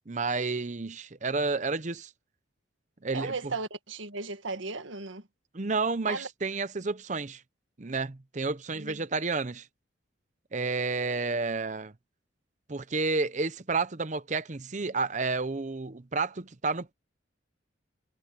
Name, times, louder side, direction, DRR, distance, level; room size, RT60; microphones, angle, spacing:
voice 1, 0.1-2.1 3.0-3.5 5.5-7.4 7.8-9.7 10.5-11.9 12.7-16.9, right 3 dB, 40° right, 0.8 m, -30 dB
voice 2, 3.1-5.2 6.1-6.3 8.8-9.0, right 3 dB, 80° right, 1.7 m, -36 dB
head